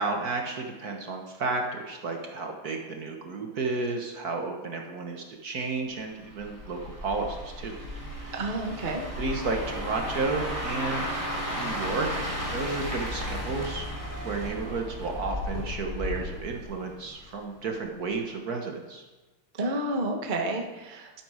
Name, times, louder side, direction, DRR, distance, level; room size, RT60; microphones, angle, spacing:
voice 1, 0.0-7.8 8.2-8.4 9.2-11.1 11.5-12.1 12.5-13.9 14.2-19.0, right 3 dB, 50° right, 2 dB, 1.5 m, -32 dB
sound 1, 6.3-17.4 17.7-18.0, equal, 10° right, 3.1 m, -34 dB
voice 2, 8.3-9.1 19.6-21.2, right 2 dB, 30° right, 2 dB, 1.0 m, -30 dB
12.0 x 8.7 x 4.9 m, 1.2 s
omnidirectional pair, 2.3 m